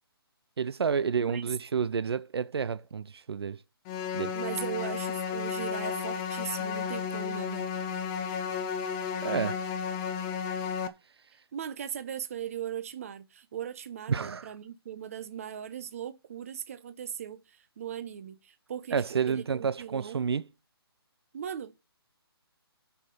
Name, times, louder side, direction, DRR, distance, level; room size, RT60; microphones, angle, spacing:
voice 1, 0.6-3.6 4.1-4.3 9.2-9.6 14.1-14.5 18.9-20.4, right 6 dB, 80° right, 0.6 m, -30 dB
voice 2, 1.2-1.5 4.3-7.7 11.5-20.2 21.3-21.8, right 9 dB, 35° right, 0.9 m, -39 dB
sound 1, 3.9-10.9, left 7 dB, 10° left, 0.4 m, -33 dB
7.9 x 5.8 x 6.5 m
hypercardioid pair, 165°, 13 cm